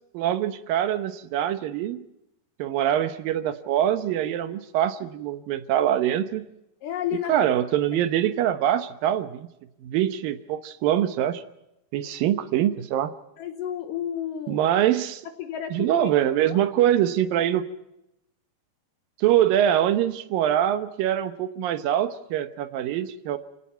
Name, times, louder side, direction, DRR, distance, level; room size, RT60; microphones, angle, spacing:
voice 1, 0.1-2.0 2.6-6.5 7.3-9.5 9.8-11.4 11.9-13.1 14.5-15.2 15.7-17.6 19.2-23.4, right 11 dB, 75° right, 11 dB, 2.6 m, -24 dB
voice 2, 6.8-7.5 7.9-8.0 13.4-14.6 15.4-16.1 16.4-16.6, left 10 dB, 70° left, 8 dB, 2.3 m, -31 dB
29.5 x 18.0 x 5.8 m, 0.85 s
omnidirectional pair, 4.4 m